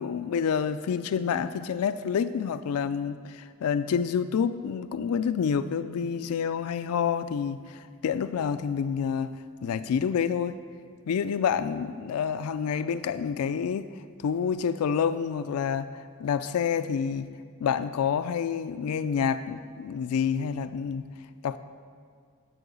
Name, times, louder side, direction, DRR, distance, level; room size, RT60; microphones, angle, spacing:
voice 1, 0.0-10.6 11.1-13.9 14.2-17.3 17.6-21.1 21.4-21.6, left 7 dB, 85° left, 13 dB, 0.3 m, -28 dB
8.5 x 7.0 x 6.8 m, 2.1 s
head